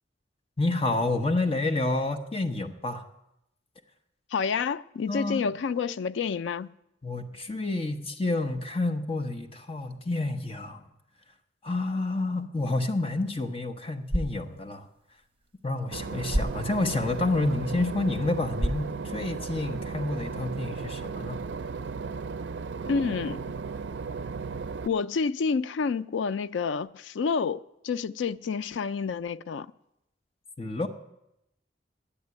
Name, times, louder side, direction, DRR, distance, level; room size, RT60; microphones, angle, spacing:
voice 1, 0.6-3.1 5.1-5.5 7.0-10.8 11.6-14.9 15.6-21.4 30.6-30.9, left 2 dB, 30° left, 1.0 m, -29 dB
voice 2, 4.3-6.7 22.9-23.5 24.9-29.7, left 5 dB, 90° left, 0.4 m, -29 dB
sound 1, 13.9-19.9, equal, 30° right, 1.1 m, -35 dB
Boat Water vehicle / Engine, 15.9-24.9, right 5 dB, 65° right, 0.4 m, -35 dB
10.0 x 8.8 x 9.5 m
head